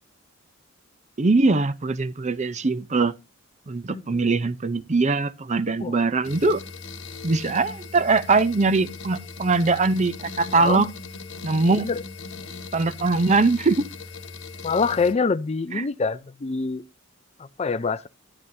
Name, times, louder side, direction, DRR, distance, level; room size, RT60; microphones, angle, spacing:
voice 1, 1.2-3.1 3.7-6.6 7.2-10.9 11.4-11.9 12.7-13.8 15.7-15.9, right 3 dB, 35° right, 0.6 m, -22 dB
sound 1, 6.2-15.1, left 4 dB, 65° left, 1.5 m, -39 dB
voice 2, 14.6-16.8 17.6-18.1, left 4 dB, 30° left, 0.5 m, -25 dB
12.5 x 10.5 x 2.7 m
head